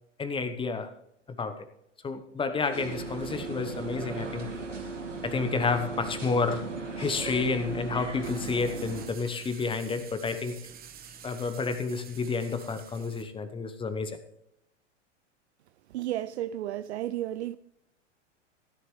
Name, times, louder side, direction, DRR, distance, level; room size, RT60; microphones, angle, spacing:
voice 1, 0.2-0.9 1.3-1.7 2.0-4.5 5.2-6.7 7.0-10.6 11.2-14.2, left 4 dB, 15° left, 0.9 m, -30 dB
sound 1, 2.7-9.1, right 3 dB, 90° right, 2.4 m, -37 dB
sound 2, 8.2-13.2, right 7 dB, 25° right, 1.3 m, -49 dB
voice 2, 15.9-17.6, right 13 dB, 65° right, 0.5 m, -32 dB
15.5 x 10.5 x 3.2 m
figure-of-eight pair, 95°, 36 cm